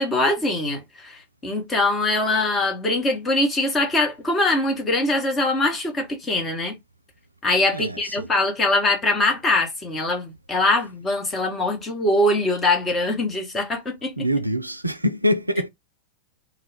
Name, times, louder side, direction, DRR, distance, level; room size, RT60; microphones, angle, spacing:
voice 1, 0.0-6.8 7.4-14.1, left 2 dB, 20° left, 0.9 m, -22 dB
voice 2, 7.7-8.3 14.2-15.7, equal, 85° right, 0.3 m, -24 dB
2.4 x 2.2 x 3.3 m
figure-of-eight pair, 90°, 0 cm